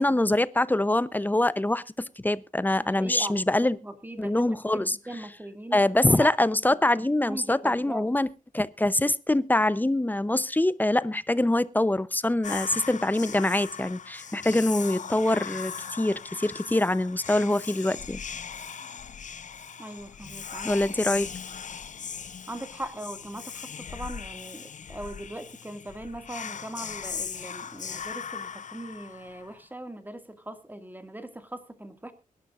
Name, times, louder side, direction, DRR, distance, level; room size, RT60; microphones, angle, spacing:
voice 1, 0.0-3.8 4.2-5.0 5.7-8.3 8.5-18.2 20.6-21.3, left 1 dB, 10° left, 0.7 m, -24 dB
voice 2, 2.8-6.3 7.3-8.1 19.8-20.8 22.5-32.1, right 1 dB, 15° right, 2.1 m, -40 dB
Whispering, 12.4-29.6, left 7 dB, 60° left, 0.6 m, -39 dB
23.5 x 11.5 x 2.5 m
wide cardioid pair, 85°, 14 cm